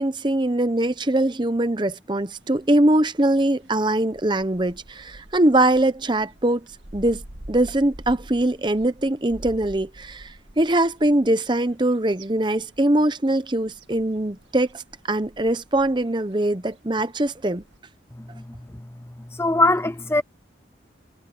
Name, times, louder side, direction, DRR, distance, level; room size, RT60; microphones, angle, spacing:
voice 1, 0.0-6.6 6.9-7.2 7.5-14.8 15.1-17.6, right 1 dB, 25° right, 0.9 m, -22 dB
sound 1, 2.3-17.8, right 1 dB, 85° right, 2.0 m, -47 dB
voice 2, 19.3-20.2, left 2 dB, 15° left, 0.5 m, -20 dB
head